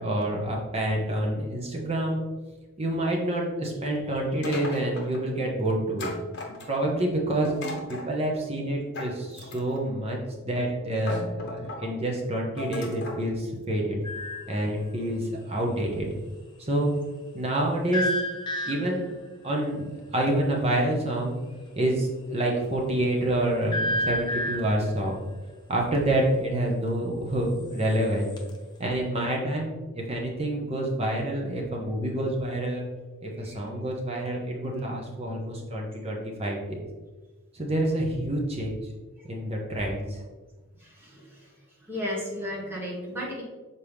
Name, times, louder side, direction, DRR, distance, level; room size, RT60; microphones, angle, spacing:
voice 1, 0.0-2.2 2.8-6.1 6.5-7.5 7.9-14.0 14.5-16.1 16.6-16.9 17.3-18.1 18.6-19.1 19.4-21.4 21.8-25.1 25.7-28.3 28.8-32.8 33.2-36.8 37.5-38.7 39.2-40.2, right 1 dB, 30° right, -1 dB, 0.9 m, -27 dB
sound 1, 4.4-5.2 6.0-6.9 7.4-8.1 8.9-9.9 10.5-10.7 11.0-11.9 12.6-13.2, left 1 dB, 50° left, 1.1 m, -36 dB
sound 2, 14.0-14.6 17.9-19.1 23.7-24.9 27.6-28.5, left 1 dB, 20° left, 0.7 m, -30 dB
voice 2, 40.8-41.5 41.8-43.4, left 1 dB, 10° right, -5 dB, 1.5 m, -34 dB
6.4 x 4.2 x 3.5 m, 1.2 s
head